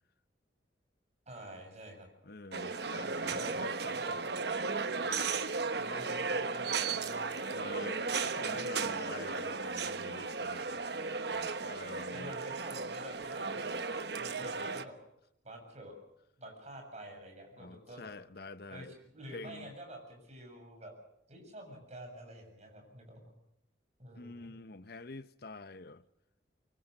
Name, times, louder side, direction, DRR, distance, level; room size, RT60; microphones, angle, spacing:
voice 1, 1.3-2.1 3.2-3.7 3.9-4.2 5.8-7.8 8.4-9.4 12.1-13.8 14.2-15.0 15.4-15.9 16.4-18.1 18.7-18.9 19.1-20.9 21.3-23.2 24.0-24.5, right 1 dB, 40° right, 7.4 m, -49 dB
voice 2, 2.2-4.0 5.0-5.2 7.5-10.8 11.3-12.3 17.6-19.0 19.3-19.7 24.1-26.0, left 3 dB, 55° left, 0.8 m, -47 dB
sound 1, 2.5-14.9, right 4 dB, 60° right, 1.2 m, -35 dB
25.5 x 23.5 x 6.6 m
head